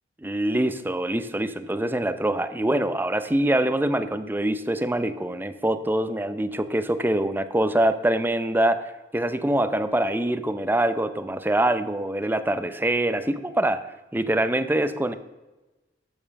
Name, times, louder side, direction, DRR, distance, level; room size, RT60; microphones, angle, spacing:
voice 1, 0.2-8.8 9.1-13.8 14.1-15.1, right 1 dB, 10° right, 10 dB, 0.6 m, -24 dB
13.5 x 5.5 x 6.5 m, 1.1 s
head